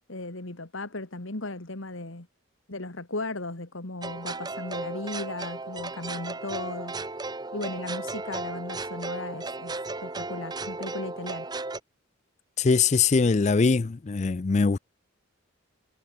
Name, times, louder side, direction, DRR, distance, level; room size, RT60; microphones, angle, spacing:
voice 1, 0.1-2.3 2.7-7.0 7.5-11.5, left 2 dB, 70° left, 2.1 m, -36 dB
sound 1, 4.0-11.8, right 3 dB, 20° right, 0.9 m, -35 dB
voice 2, 12.6-14.8, left 4 dB, 35° left, 0.4 m, -22 dB
head